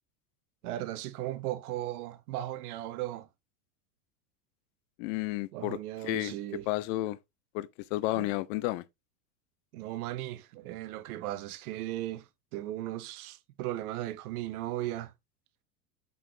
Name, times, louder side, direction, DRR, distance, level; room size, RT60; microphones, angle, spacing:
voice 1, 0.6-3.3 5.5-6.7 8.1-8.3 9.7-12.2 12.5-15.1, right 14 dB, 70° right, 1.0 m, -37 dB
voice 2, 5.0-5.8 6.0-6.3 6.7-7.2 7.5-8.8, left 17 dB, 55° left, 0.6 m, -31 dB
7.5 x 3.9 x 3.2 m
supercardioid pair, 115°, 46 cm